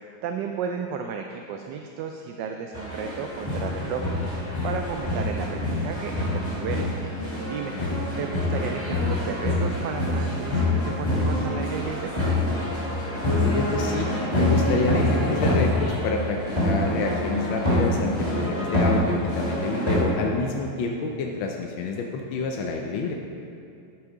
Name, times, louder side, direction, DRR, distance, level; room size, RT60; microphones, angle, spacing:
voice 1, 0.2-4.0 4.6-6.9 7.5-7.7 8.2-12.1, right 7 dB, 75° right, 4 dB, 1.1 m, -33 dB
sound 1, 2.7-20.0, left 1 dB, 15° left, 2.2 m, -26 dB
voice 2, 13.4-23.1, left 3 dB, 75° left, 1 dB, 1.4 m, -28 dB
11.0 x 6.2 x 4.8 m, 2.5 s
omnidirectional pair, 2.2 m